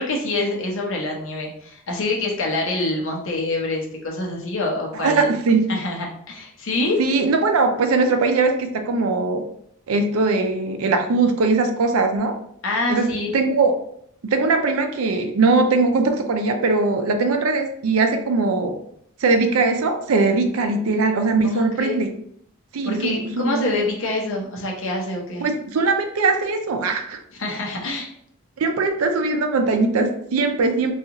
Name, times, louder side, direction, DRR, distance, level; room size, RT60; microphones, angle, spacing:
voice 1, 0.0-5.3 5.7-7.0 12.6-13.4 21.4-22.0 22.8-25.5 27.4-28.1, left 2 dB, 60° left, -1 dB, 0.7 m, -26 dB
voice 2, 5.0-5.6 7.0-9.4 9.9-12.4 12.9-13.8 14.3-18.7 19.2-22.1 22.7-23.8 25.4-27.2 28.6-30.9, right 3 dB, 75° right, 5 dB, 0.4 m, -20 dB
2.4 x 2.4 x 2.8 m, 0.69 s
head